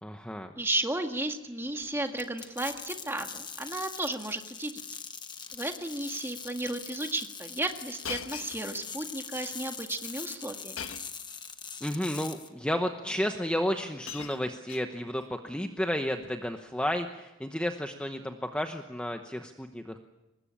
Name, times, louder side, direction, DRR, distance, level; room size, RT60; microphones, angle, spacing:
voice 1, 0.0-0.5 11.8-20.0, equal, 5° left, 5 dB, 0.9 m, -32 dB
voice 2, 0.6-4.8 5.5-10.8, right 1 dB, 10° right, 5 dB, 1.8 m, -34 dB
Shatter, 1.7-2.2 2.5-3.0 3.3-3.6 3.8-3.9 4.8-5.0 5.4-5.6 6.4-6.5 8.0-9.1 10.8-11.2 12.3-12.4 13.4-13.5 13.8-15.3 16.2-16.5, left 8 dB, 80° left, 1.3 m, -43 dB
sound 1, 2.2-12.5, left 6 dB, 20° left, 1.3 m, -42 dB
24.0 x 20.5 x 8.7 m, 1.0 s
head